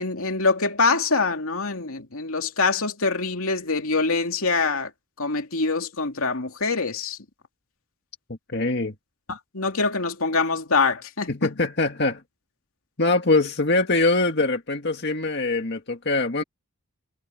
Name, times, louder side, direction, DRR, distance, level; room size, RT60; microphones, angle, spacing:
voice 1, 0.0-4.9 5.2-7.2 9.3-11.3, left 4 dB, 75° left, 2.7 m, -24 dB
voice 2, 8.5-8.9 11.3-12.2 13.0-16.4, left 2 dB, 50° left, 1.9 m, -23 dB
head